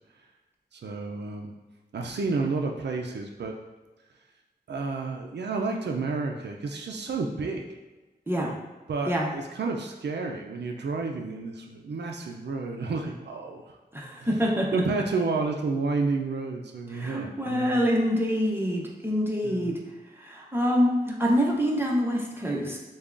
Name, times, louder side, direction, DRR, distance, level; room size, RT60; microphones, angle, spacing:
voice 1, 0.7-1.5 1.9-3.5 4.7-7.7 8.9-13.8 14.2-14.4 14.7-17.8 19.4-19.8, right 4 dB, 85° right, 2 dB, 0.4 m, -31 dB
voice 2, 13.9-14.8 16.9-19.8 20.2-22.8, equal, 15° right, -2 dB, 0.9 m, -26 dB
6.6 x 2.3 x 2.5 m, 1.2 s
wide cardioid pair, 60°, 17 cm